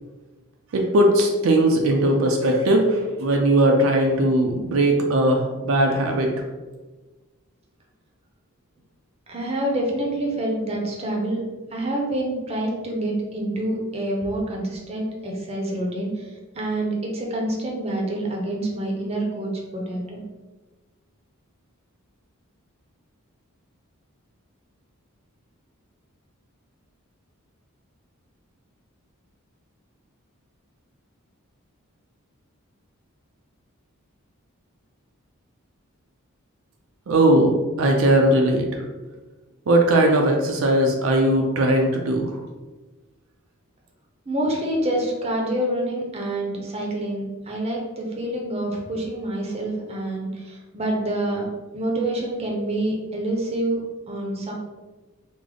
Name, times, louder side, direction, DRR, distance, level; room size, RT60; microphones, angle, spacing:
voice 1, 0.7-6.3 37.1-37.5 37.8-38.7 39.7-42.3, right 1 dB, 70° right, 2 dB, 0.4 m, -19 dB
voice 2, 9.3-11.4 11.7-20.2 44.3-51.5 51.7-53.8 54.1-54.5, right 1 dB, 30° right, -1 dB, 0.6 m, -27 dB
3.3 x 2.0 x 3.7 m, 1.2 s
head